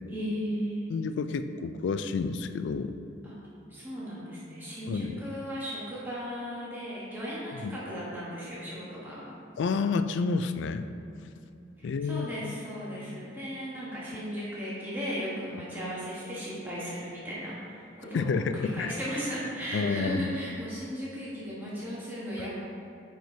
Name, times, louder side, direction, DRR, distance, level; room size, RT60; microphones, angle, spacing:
voice 1, 0.1-0.8 3.2-3.3 3.7-9.3 11.8-22.5, equal, 10° right, -9 dB, 1.2 m, -36 dB
voice 2, 0.9-2.9 4.9-5.2 7.6-7.8 9.6-10.8 11.8-12.6 18.1-19.0 19.7-20.4 22.4-22.5, left 4 dB, 70° left, 10 dB, 0.3 m, -30 dB
9.1 x 4.5 x 2.7 m, 2.7 s
head